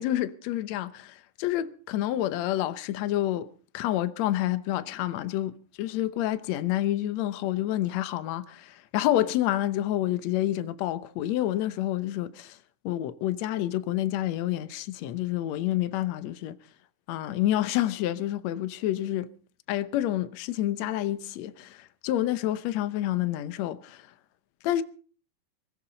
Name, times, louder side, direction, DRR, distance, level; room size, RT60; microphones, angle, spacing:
voice 1, 0.0-12.6 12.9-16.6 17.1-19.3 19.7-24.0 24.6-24.8, left 13 dB, 75° left, 2.1 m, -28 dB
22.5 x 15.0 x 3.9 m
omnidirectional pair, 3.3 m